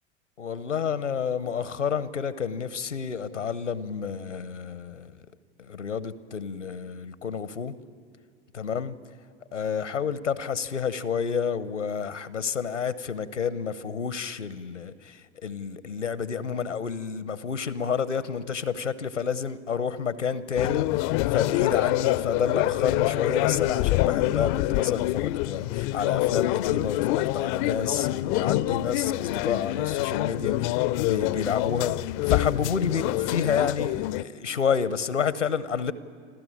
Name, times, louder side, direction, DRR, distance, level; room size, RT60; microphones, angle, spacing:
voice 1, 0.4-5.1 5.6-7.7 8.5-8.9 9.5-20.9 21.3-35.9, left 6 dB, 85° left, 0.9 m, -29 dB
sound 1, 20.6-34.2, left 18 dB, 40° left, 0.5 m, -26 dB
26.5 x 14.0 x 8.6 m
figure-of-eight pair, 85°, 35 cm